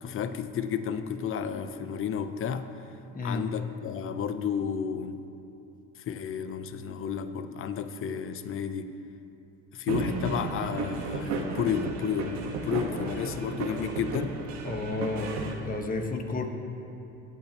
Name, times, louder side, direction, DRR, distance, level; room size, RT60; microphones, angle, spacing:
voice 1, 0.0-2.7 3.2-5.2 6.1-8.9 9.7-14.4, left 7 dB, 45° left, 10 dB, 0.8 m, -32 dB
voice 2, 3.1-3.5 14.6-15.4 15.6-16.5, left 3 dB, 25° left, 4 dB, 1.5 m, -31 dB
sound 1, 9.9-15.5, right 4 dB, 65° right, 1.6 m, -34 dB
21.0 x 8.9 x 3.1 m, 2.9 s
supercardioid pair, 90°, 31 cm